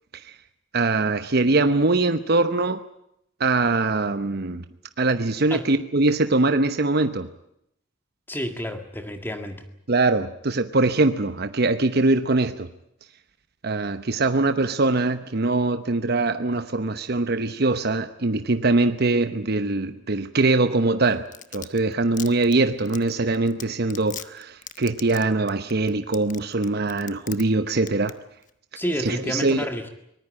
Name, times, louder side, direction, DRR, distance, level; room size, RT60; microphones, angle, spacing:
voice 1, 0.7-2.8 3.4-4.6 5.0-7.3 9.9-12.7 13.6-21.3 21.5-28.2 29.0-29.7, right 3 dB, 55° right, 10 dB, 1.0 m, -22 dB
voice 2, 8.3-9.6 28.8-29.9, equal, 10° left, 6 dB, 2.0 m, -30 dB
Domestic sounds home sounds, 21.1-27.4 27.7-28.1 28.4-28.5, left 10 dB, 45° left, 1.1 m, -38 dB
24.0 x 19.5 x 8.8 m, 0.77 s
head